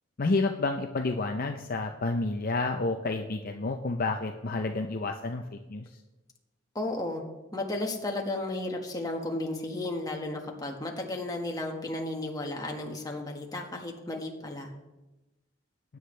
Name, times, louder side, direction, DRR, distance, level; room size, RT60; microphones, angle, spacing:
voice 1, 0.2-5.4 5.7-5.8, left 3 dB, 45° left, 4 dB, 0.6 m, -29 dB
voice 2, 6.7-7.2 7.5-14.7, left 2 dB, 20° left, 1 dB, 1.6 m, -34 dB
19.5 x 9.4 x 3.3 m, 1.1 s
head